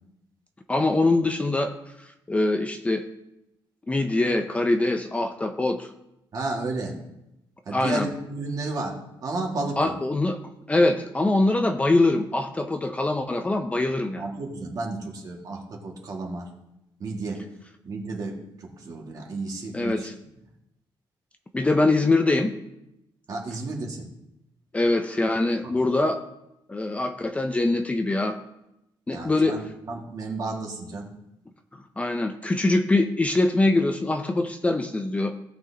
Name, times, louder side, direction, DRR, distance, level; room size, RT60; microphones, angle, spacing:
voice 1, 0.7-3.0 3.9-5.9 7.7-8.1 9.8-10.4 10.7-14.2 19.7-20.1 21.5-22.5 24.7-26.2 26.7-28.4 29.1-29.6 32.0-35.3, left 2 dB, 15° left, 6 dB, 0.5 m, -23 dB
voice 2, 6.3-7.0 7.7-8.9 9.2-10.0 14.2-16.5 17.0-17.5 17.9-20.1 23.3-24.1 25.6-25.8 29.1-31.1, right 3 dB, 45° right, 0 dB, 1.9 m, -32 dB
17.0 x 6.1 x 2.9 m, 0.86 s
cardioid pair, 145°, 9 cm